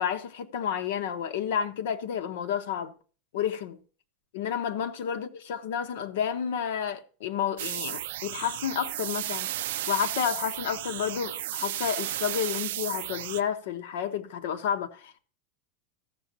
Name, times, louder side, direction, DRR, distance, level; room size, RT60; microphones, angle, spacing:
voice 1, 0.0-2.9 3.3-3.8 4.3-15.2, left 8 dB, 65° left, 1.1 m, -31 dB
sound 1, 7.6-13.4, right 14 dB, 70° right, 0.4 m, -34 dB
15.0 x 7.1 x 2.8 m
supercardioid pair, 175°, 0 cm